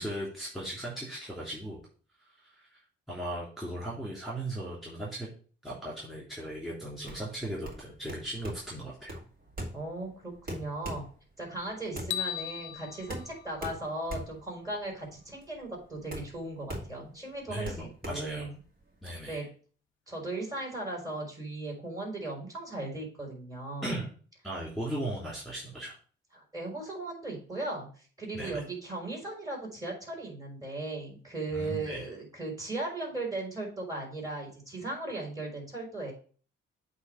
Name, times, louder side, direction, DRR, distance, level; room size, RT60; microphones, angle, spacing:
voice 1, 0.0-1.8 2.4-2.8 3.1-5.3 5.6-9.2 17.5-18.5 19.0-19.4 23.8-24.1 24.4-26.0 28.3-28.6 31.5-32.1, right 1 dB, ahead, -4 dB, 3.0 m, -37 dB
sound 1, 7.0-19.1, right 1 dB, 45° right, 2.3 m, -42 dB
voice 2, 9.7-11.0 11.4-17.8 18.1-18.5 19.3-19.5 20.1-24.0 26.3-36.1, right 2 dB, 20° right, -1 dB, 3.8 m, -37 dB
sound 2, 12.1-14.4, left 13 dB, 85° left, 0.5 m, -38 dB
8.0 x 3.2 x 6.2 m, 0.41 s
cardioid pair, 90°, 20 cm